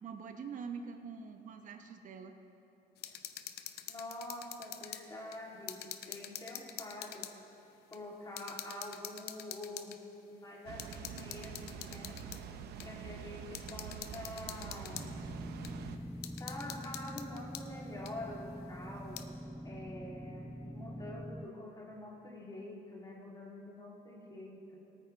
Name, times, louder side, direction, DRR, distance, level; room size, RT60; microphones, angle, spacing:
voice 1, 0.0-2.4, right 6 dB, 50° right, 6 dB, 1.0 m, -44 dB
sound 1, 3.0-5.1 5.3-7.4 7.9-8.0 8.4-10.0 10.8-12.4 12.8-12.9 13.5-15.1 15.6-15.7 16.2-17.7 18.1-18.2 18.9-19.3, left 11 dB, 70° left, 0.7 m, -46 dB
voice 2, 3.9-7.3 7.9-10.0 10.3-12.2 12.8-15.1 16.4-19.3 19.6-24.9, left 1 dB, 20° left, -3 dB, 2.8 m, -46 dB
Water, 10.7-16.0, right 7 dB, 75° right, 0.8 m, -46 dB
sound 2, 14.9-21.5, equal, ahead, 0.3 m, -45 dB
21.5 x 9.3 x 3.3 m, 2.8 s
cardioid pair, 110°, 17 cm